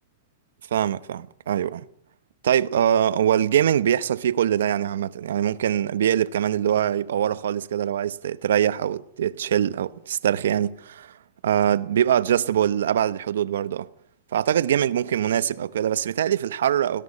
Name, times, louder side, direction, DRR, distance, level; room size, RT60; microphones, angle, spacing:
voice 1, 0.7-1.8 2.4-11.1 11.4-13.9 14.3-17.0, right 10 dB, 85° right, 1.0 m, -23 dB
18.0 x 17.5 x 8.6 m
supercardioid pair, 180°, 0 cm